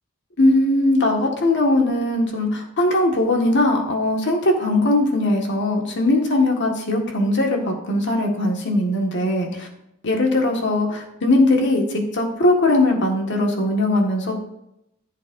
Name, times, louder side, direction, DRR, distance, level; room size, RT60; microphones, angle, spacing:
voice 1, 0.4-9.7 10.0-14.4, left 1 dB, 55° left, 1 dB, 1.7 m, -20 dB
15.0 x 7.5 x 2.6 m, 0.82 s
head